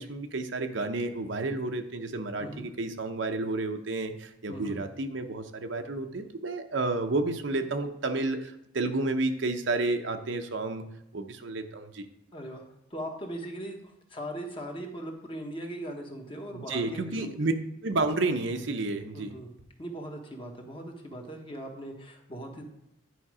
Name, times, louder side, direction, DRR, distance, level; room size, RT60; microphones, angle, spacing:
voice 1, 0.0-10.8 11.1-12.1 16.5-17.5 17.8-19.3, right 2 dB, 70° right, 6 dB, 0.7 m, -31 dB
voice 2, 12.3-12.6 12.9-17.5 19.1-19.5 19.8-22.6, right 1 dB, 25° left, 2 dB, 1.2 m, -39 dB
10.0 x 5.1 x 4.9 m, 0.84 s
head